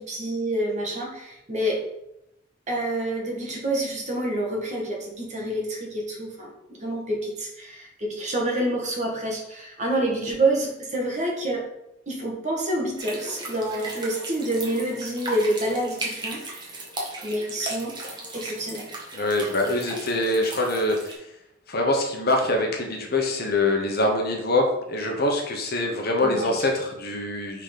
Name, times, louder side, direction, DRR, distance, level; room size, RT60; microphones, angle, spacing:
voice 1, 0.0-1.8 2.7-11.6 12.1-16.6 17.2-17.9 18.3-18.8 26.2-26.6, right 1 dB, 40° right, -1 dB, 1.7 m, -27 dB
sound 1, 13.0-21.1, right 2 dB, 25° right, 1.5 m, -36 dB
voice 2, 19.1-21.1 21.7-27.6, left 2 dB, 55° left, 2 dB, 1.2 m, -24 dB
5.8 x 4.1 x 5.2 m, 0.84 s
head